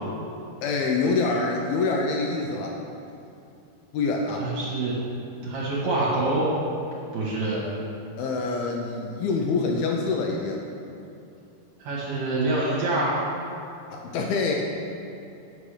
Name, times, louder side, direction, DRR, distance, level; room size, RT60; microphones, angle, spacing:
voice 1, 0.6-2.8 3.9-4.4 8.2-10.6 13.9-14.6, left 3 dB, 80° left, 0 dB, 2.4 m, -25 dB
voice 2, 4.3-5.0 5.4-6.5 7.1-7.6 11.8-13.1, right 2 dB, 55° right, -7 dB, 2.4 m, -26 dB
8.9 x 6.9 x 4.9 m, 2.7 s
omnidirectional pair, 4.8 m